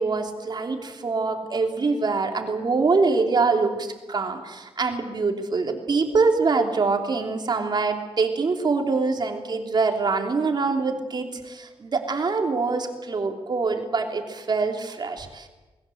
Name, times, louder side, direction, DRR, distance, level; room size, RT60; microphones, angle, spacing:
voice 1, 0.0-15.5, right 4 dB, 45° right, 4 dB, 3.2 m, -24 dB
29.0 x 20.5 x 8.0 m, 1.2 s
wide cardioid pair, 175°, 10 cm